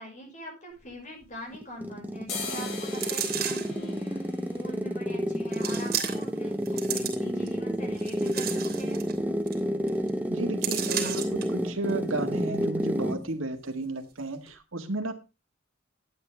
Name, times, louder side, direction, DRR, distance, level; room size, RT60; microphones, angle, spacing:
voice 1, 0.0-9.0, equal, 40° left, 2 dB, 5.9 m, -44 dB
sound 1, 0.7-1.8 2.1-9.8 10.1-10.2 10.5-11.1 11.4-11.6 11.9-12.1 12.4-13.1 13.4-13.6 14.1-14.2 14.5-14.6, left 4 dB, 55° left, 4.9 m, -44 dB
sound 2, 1.5-13.3, equal, 10° right, 1.0 m, -30 dB
sound 3, 2.9-3.8 4.6-4.7 5.5-6.4 6.7-7.5 8.0-9.2 9.5-9.6 9.9-10.1 10.6-11.4 11.9-12.0, right 9 dB, 50° right, 3.1 m, -33 dB
voice 2, 10.3-15.1, right 2 dB, 85° right, 6 dB, 1.9 m, -33 dB
12.0 x 9.3 x 3.5 m, 0.29 s
head